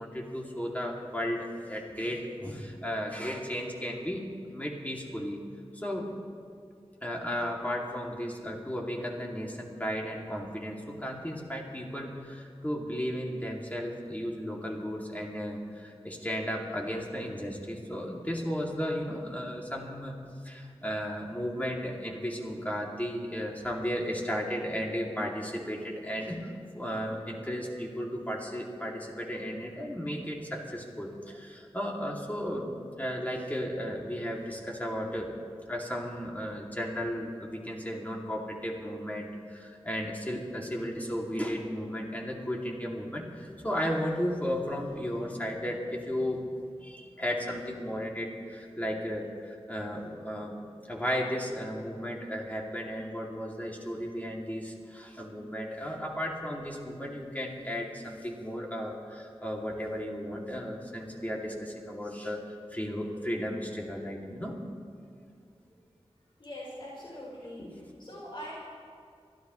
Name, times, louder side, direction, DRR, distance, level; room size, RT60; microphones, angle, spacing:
voice 1, 0.0-4.3 4.5-5.4 5.7-6.1 7.0-20.1 20.4-35.3 35.7-46.4 46.8-50.5 50.8-62.5 62.7-64.6, equal, 15° left, -2 dB, 2.5 m, -34 dB
voice 2, 66.4-67.7 68.0-68.5, equal, 50° left, -6 dB, 4.0 m, -42 dB
24.0 x 13.5 x 3.1 m, 2.3 s
wide cardioid pair, 65°, 11 cm